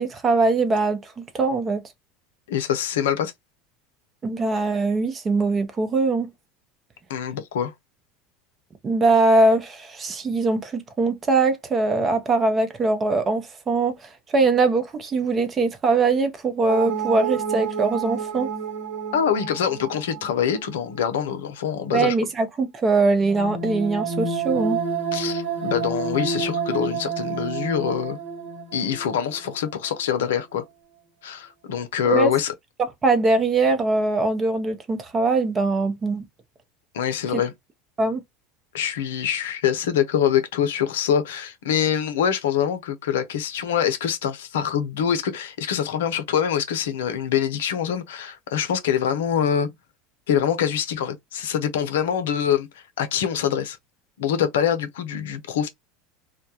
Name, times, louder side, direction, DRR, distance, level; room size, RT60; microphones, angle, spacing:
voice 1, 0.0-1.8 4.2-6.3 8.8-14.0 14.3-18.5 21.9-24.8 32.0-32.3 33.0-36.2 37.3-37.4 38.0-38.2, right 3 dB, 30° right, 0.7 m, -21 dB
voice 2, 2.5-3.3 7.1-7.7 19.1-22.1 25.1-28.2 28.7-30.6 31.2-32.5 36.9-37.5 38.7-49.7 50.3-52.7 53.0-53.8 54.2-55.7, left 8 dB, 80° left, 0.5 m, -24 dB
sound 1, 16.7-21.0 23.2-29.5 30.0-30.1, right 5 dB, 75° right, 0.8 m, -29 dB
2.2 x 2.2 x 2.8 m
hypercardioid pair, 85°, 0 cm